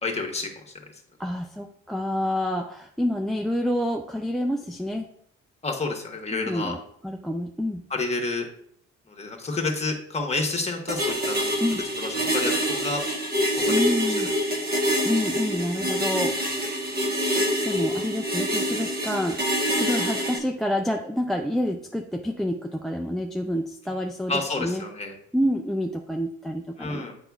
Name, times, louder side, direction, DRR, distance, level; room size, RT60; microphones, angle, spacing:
voice 1, 0.0-0.5 5.6-6.7 7.9-8.5 9.1-11.5 12.0-13.0 13.6-13.7 14.2-14.3 24.3-25.1 26.8-27.1, left 3 dB, 20° left, 1 dB, 1.3 m, -29 dB
voice 2, 1.2-5.1 6.3-6.8 7.0-7.8 11.6-11.9 13.7-14.3 15.0-16.7 17.6-19.4 19.7-24.8 25.3-27.1, left 1 dB, ahead, 4 dB, 0.3 m, -28 dB
sound 1, 10.9-20.4, equal, 30° right, 1.3 m, -26 dB
7.8 x 5.0 x 2.4 m, 0.67 s
cardioid pair, 90°, 30 cm